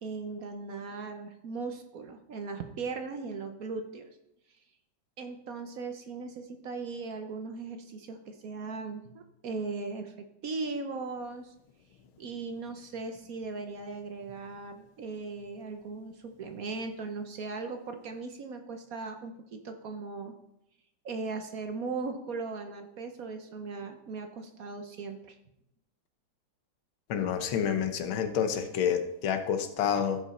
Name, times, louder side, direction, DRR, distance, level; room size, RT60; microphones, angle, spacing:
voice 1, 0.0-4.1 5.2-11.5 12.2-20.3 21.0-25.4, right 4 dB, 60° right, 6 dB, 1.0 m, -38 dB
voice 2, 27.1-30.2, left 8 dB, 80° left, 8 dB, 1.7 m, -28 dB
15.5 x 5.3 x 4.2 m, 0.82 s
omnidirectional pair, 2.2 m